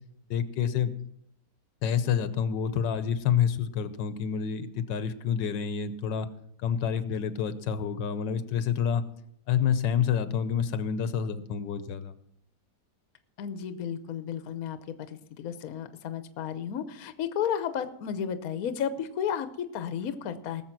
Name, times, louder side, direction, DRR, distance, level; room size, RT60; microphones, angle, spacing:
voice 1, 0.3-0.9 1.8-6.3 6.6-9.0 9.5-12.1, left 8 dB, 80° left, 13 dB, 1.5 m, -28 dB
voice 2, 13.4-14.8 15.1-20.6, left 8 dB, 60° left, 11 dB, 1.2 m, -33 dB
19.0 x 7.2 x 6.0 m, 0.73 s
omnidirectional pair, 1.9 m